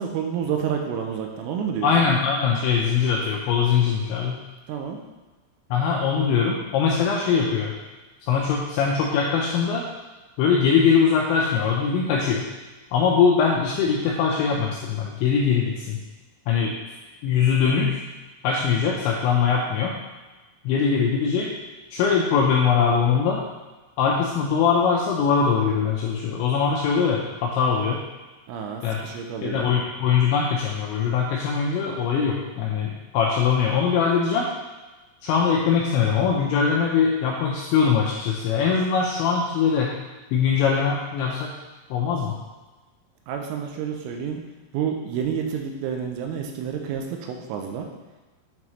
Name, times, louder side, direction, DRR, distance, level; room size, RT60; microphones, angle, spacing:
voice 1, 0.0-2.1 4.7-5.0 28.5-29.7 43.3-44.4 44.7-47.9, right 7 dB, 85° right, 3 dB, 3.1 m, -29 dB
voice 2, 1.8-4.4 5.7-7.7 8.2-9.8 10.4-12.4 12.9-16.0 16.5-16.7 17.2-18.0 18.4-19.9 20.7-21.5 21.9-23.4 24.0-28.0 28.8-29.0 29.4-34.5 35.2-39.9 40.3-41.5 41.9-42.4, left 6 dB, 90° left, -2 dB, 2.6 m, -22 dB
8.8 x 3.5 x 3.0 m, 1.2 s
omnidirectional pair, 5.8 m